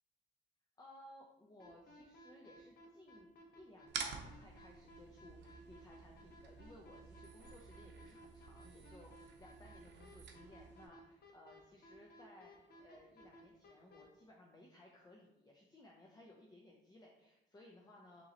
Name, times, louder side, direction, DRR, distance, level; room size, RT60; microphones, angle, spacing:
voice 1, 0.8-3.3 3.6-18.3, left 1 dB, 20° left, -1 dB, 0.6 m, -60 dB
sound 1, 1.6-14.0, left 1 dB, 55° left, 1.1 m, -59 dB
sound 2, 3.9-10.9, right 5 dB, 60° right, 0.7 m, -50 dB
3.7 x 2.9 x 4.1 m, 0.94 s
cardioid pair, 90°, 20 cm